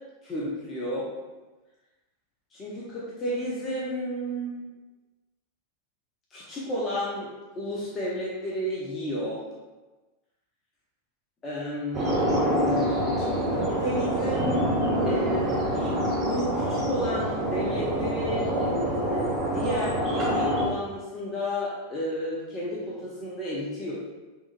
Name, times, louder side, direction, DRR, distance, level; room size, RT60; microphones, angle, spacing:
voice 1, 0.2-1.1 2.5-4.6 6.3-7.3 7.5-9.4 11.4-14.7 15.0-23.9, equal, 25° left, -6 dB, 0.7 m, -32 dB
sound 1, 11.9-20.7, right 1 dB, 25° right, 0.9 m, -26 dB
3.7 x 3.1 x 2.5 m, 1.2 s
figure-of-eight pair, 90°, 0 cm